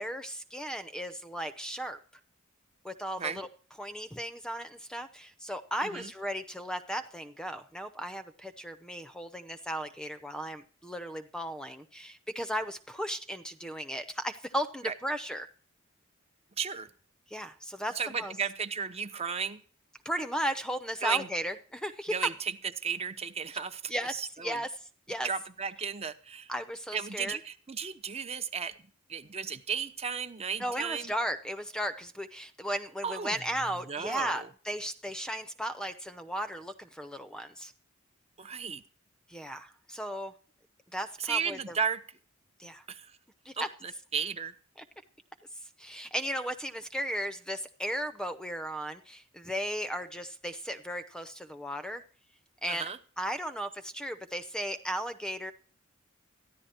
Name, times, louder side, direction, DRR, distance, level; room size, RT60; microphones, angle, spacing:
voice 1, 0.0-2.0 2.8-3.5 3.8-15.5 17.3-18.3 20.0-22.1 23.9-24.1 24.4-24.7 25.1-25.3 26.5-27.4 30.6-37.7 39.3-40.3 40.9-41.8 42.6-42.8 43.4-43.7 45.8-52.0 52.6-52.9 53.2-55.5, equal, 5° left, 10 dB, 0.8 m, -35 dB
voice 2, 16.6-16.9 17.9-19.6 21.0-21.3 22.1-22.5 22.8-24.6 25.2-26.5 26.9-28.8 29.1-31.1 33.0-33.4 33.9-34.5 38.4-38.8 41.2-42.0 42.9-43.2 43.6-44.5 52.7-53.0, right 6 dB, 30° right, 9 dB, 0.9 m, -34 dB
14.0 x 11.0 x 4.4 m, 0.42 s
head